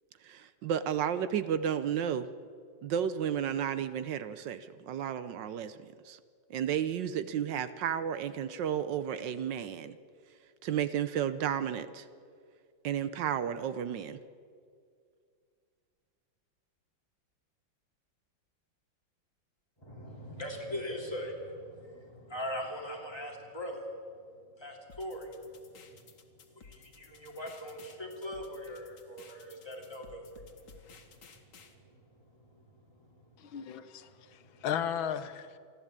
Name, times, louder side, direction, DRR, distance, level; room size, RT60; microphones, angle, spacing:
voice 1, 0.2-2.3 2.8-5.8 6.0-6.2 6.5-10.0 10.6-12.1 12.8-14.2, right 9 dB, 70° right, 13 dB, 1.3 m, -32 dB
voice 2, 19.8-23.9 24.6-25.3 25.7-26.1 26.5-33.6 34.1-34.2 34.5-34.7, equal, 10° left, -1 dB, 3.2 m, -42 dB
sound 1, 24.9-31.7, left 5 dB, 65° left, 2.2 m, -56 dB
voice 3, 33.4-35.6, left 9 dB, 85° left, 10 dB, 1.7 m, -35 dB
28.0 x 11.0 x 8.8 m, 2.2 s
omnidirectional pair, 2.1 m